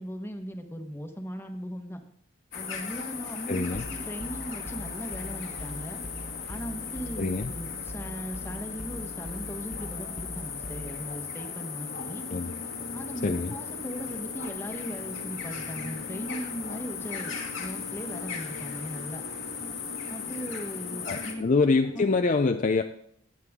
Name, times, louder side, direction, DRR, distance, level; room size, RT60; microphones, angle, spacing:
voice 1, 0.0-2.0 2.5-6.0 6.5-12.2 12.9-19.2 20.1-21.5 21.9-22.1, equal, 10° left, 5 dB, 1.2 m, -38 dB
sound 1, 2.5-21.3, left 6 dB, 80° left, 1.9 m, -37 dB
voice 2, 3.5-3.9 7.2-7.5 12.3-12.5 13.2-13.5 21.1-22.8, left 3 dB, 40° left, 6 dB, 0.5 m, -25 dB
sound 2, 3.7-11.1, right 1 dB, 5° right, 0.8 m, -42 dB
sound 3, 11.9-22.2, left 2 dB, 60° left, 1.5 m, -43 dB
16.0 x 9.5 x 3.6 m, 0.69 s
head